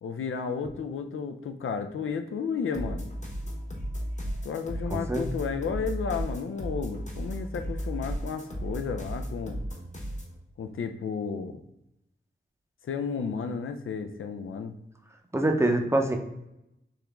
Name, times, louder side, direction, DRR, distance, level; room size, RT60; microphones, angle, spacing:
voice 1, 0.0-3.1 4.4-9.6 10.6-11.6 12.8-14.7, left 6 dB, 90° left, 7 dB, 0.4 m, -33 dB
sound 1, 2.7-10.4, equal, 35° left, 0.9 m, -35 dB
voice 2, 4.9-5.2 15.3-16.2, right 1 dB, 15° right, 3 dB, 0.6 m, -24 dB
3.6 x 3.0 x 3.4 m, 0.86 s
wide cardioid pair, 105°, 20 cm